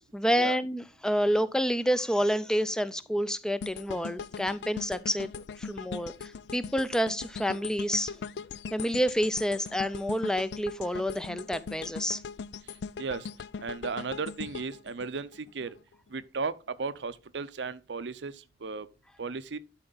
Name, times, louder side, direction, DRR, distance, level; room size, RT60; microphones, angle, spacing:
voice 1, 0.1-5.3 5.6-8.1 8.7-12.2, equal, 5° left, 0.4 m, -28 dB
sound 1, 3.6-15.8 16.2-16.4, left 5 dB, 75° left, 0.4 m, -40 dB
voice 2, 13.0-13.3 13.6-15.8 16.1-18.9 19.2-19.6, right 4 dB, 90° right, 0.6 m, -35 dB
11.5 x 4.5 x 3.9 m
head